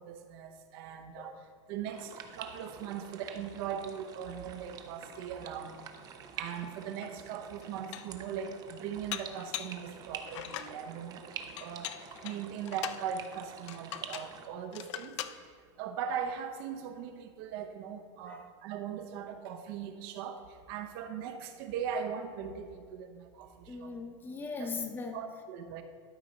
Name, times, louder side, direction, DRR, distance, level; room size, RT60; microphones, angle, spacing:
voice 1, 0.0-1.4 1.7-5.8 6.4-15.5 15.8-20.4 20.7-23.9 24.6-24.7 25.1-25.8, right 8 dB, 50° right, 6 dB, 0.8 m, -39 dB
sound 1, 1.9-14.5, right 7 dB, 25° right, 0.5 m, -47 dB
Dishes pots and pans, 7.0-7.1 7.6-8.2 9.1-9.8 10.3-10.8 11.6-13.1 13.7-14.3 14.7-15.4, left 12 dB, 65° left, 0.5 m, -41 dB
voice 2, 23.7-25.2, left 4 dB, 10° left, 5 dB, 0.7 m, -40 dB
12.0 x 4.1 x 5.2 m, 2.1 s
supercardioid pair, 155°, 16 cm